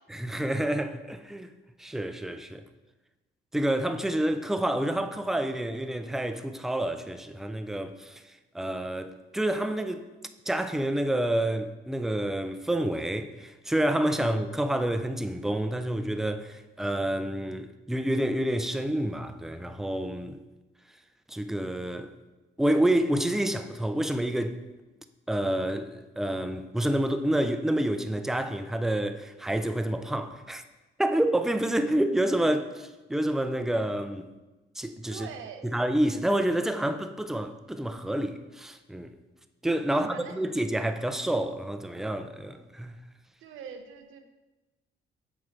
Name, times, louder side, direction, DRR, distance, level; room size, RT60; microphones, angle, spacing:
voice 1, 0.1-1.5 1.8-2.6 3.5-8.2 8.5-10.1 10.5-20.4 21.3-22.1 22.6-24.6 25.3-30.6 31.0-34.2 34.8-35.3 35.7-39.1 39.6-42.9, right 1 dB, ahead, 0.4 m, -28 dB
voice 2, 35.1-35.7 39.9-40.5 43.4-44.2, right 7 dB, 80° right, 0.7 m, -43 dB
7.1 x 4.6 x 3.3 m
cardioid pair, 90°, 20 cm